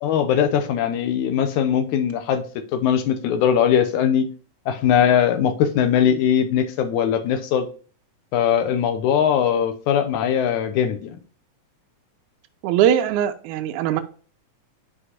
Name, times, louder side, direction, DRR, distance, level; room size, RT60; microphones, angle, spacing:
voice 1, 0.0-2.4 2.7-4.3 4.7-7.7 8.3-11.2, left 8 dB, 80° left, 2.1 m, -20 dB
voice 2, 12.6-14.0, right 10 dB, 80° right, 1.9 m, -20 dB
11.0 x 4.5 x 2.9 m
omnidirectional pair, 3.6 m